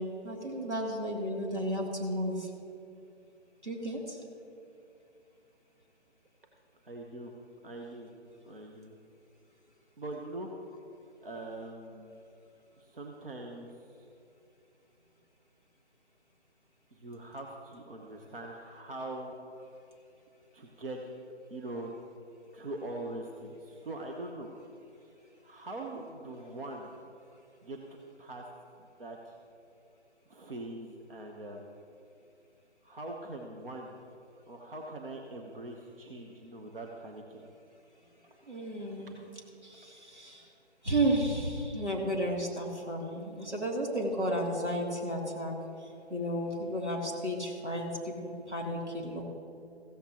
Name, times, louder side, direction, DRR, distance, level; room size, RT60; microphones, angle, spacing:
voice 1, 0.0-2.5 3.6-4.2 38.5-39.2 39.6-40.5 40.8-45.5 46.1-49.2, right 1 dB, 85° right, -1 dB, 3.0 m, -33 dB
voice 2, 6.8-7.3 7.6-8.1 8.4-9.0 10.0-10.5 11.2-12.1 12.8-13.7 16.9-19.3 20.5-21.0 21.5-21.9 22.5-24.5 25.4-26.9 27.6-27.8 28.2-28.4 28.8-29.3 30.3-31.8 32.8-34.0 34.5-37.4, right 2 dB, 55° right, 1 dB, 1.3 m, -42 dB
15.5 x 15.0 x 3.0 m, 2.6 s
figure-of-eight pair, 150°, 34 cm